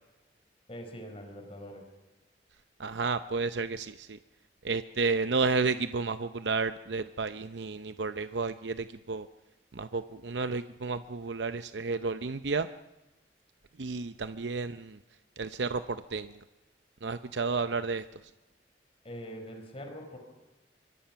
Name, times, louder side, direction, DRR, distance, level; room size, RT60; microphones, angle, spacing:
voice 1, 0.7-1.9 19.0-20.2, equal, 35° left, 4 dB, 4.7 m, -43 dB
voice 2, 2.8-4.2 4.6-9.3 9.8-12.7 13.8-15.0 15.4-15.8 16.1-16.3 17.0-18.0, right 4 dB, 85° right, 11 dB, 0.7 m, -31 dB
25.0 x 23.5 x 5.9 m, 1.0 s
head